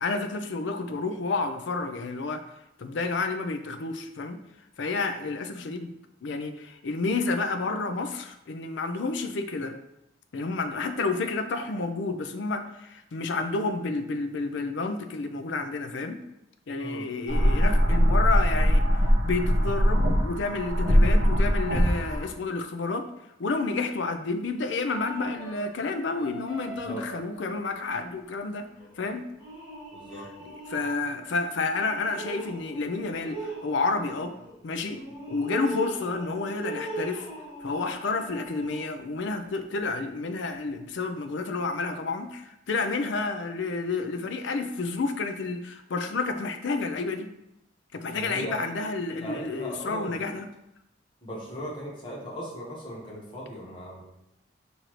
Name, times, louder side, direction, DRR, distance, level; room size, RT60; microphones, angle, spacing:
voice 1, 0.0-2.5 2.8-4.4 4.8-5.9 6.2-9.8 10.3-16.2 16.7-18.9 19.2-23.1 23.4-28.7 29.0-29.3 30.4-34.3 34.6-35.0 35.3-37.3 37.6-47.3 47.9-50.5, left 3 dB, 65° left, 7 dB, 0.4 m, -30 dB
sound 1, 17.3-22.2, equal, 85° right, 1.1 m, -22 dB
sound 2, 24.9-27.5 28.8-29.0 29.4-31.2 31.7-39.0 40.4-40.7, right 2 dB, 15° right, 1.7 m, -41 dB
voice 2, 29.9-30.3 48.1-48.7 49.2-50.2 51.2-54.0, equal, 25° left, -5 dB, 1.2 m, -38 dB
6.4 x 2.6 x 3.0 m, 0.83 s
head